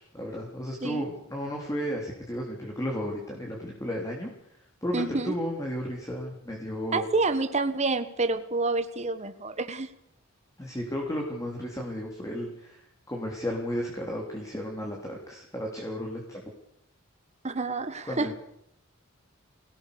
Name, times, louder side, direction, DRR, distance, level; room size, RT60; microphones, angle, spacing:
voice 1, 0.0-4.3 4.8-7.1 10.6-16.4 18.0-18.3, equal, 15° left, -1 dB, 3.5 m, -33 dB
voice 2, 4.9-5.3 6.9-9.9 17.4-18.3, right 3 dB, 30° right, 9 dB, 1.4 m, -28 dB
26.0 x 18.0 x 6.9 m, 0.75 s
head